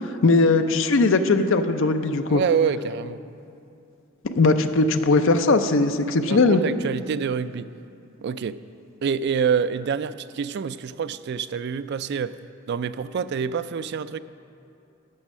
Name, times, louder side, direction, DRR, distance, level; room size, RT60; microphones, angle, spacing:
voice 1, 0.2-2.4 4.2-6.6, left 3 dB, 60° left, 8 dB, 0.6 m, -19 dB
voice 2, 2.3-3.2 6.3-7.7 8.2-8.6 9.0-12.3 12.7-14.2, right 6 dB, 50° right, 14 dB, 0.3 m, -26 dB
12.0 x 7.1 x 5.4 m, 2.7 s
head